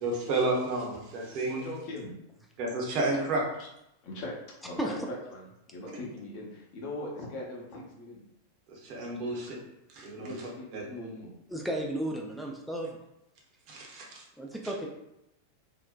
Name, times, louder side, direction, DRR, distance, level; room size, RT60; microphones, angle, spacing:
voice 1, 0.0-1.7 2.6-3.4 8.8-9.6 9.9-10.3 10.7-10.8 13.7-14.2, right 2 dB, 45° right, -1 dB, 0.6 m, -31 dB
voice 2, 1.4-2.2 3.6-3.7 4.0-4.3 4.6-5.0 5.3-8.2 10.2-11.3, left 2 dB, 45° left, -2 dB, 0.7 m, -40 dB
voice 3, 11.5-13.0 14.4-14.9, right 1 dB, ahead, 0 dB, 0.3 m, -33 dB
2.6 x 2.1 x 2.3 m, 0.84 s
figure-of-eight pair, 90°, 0 cm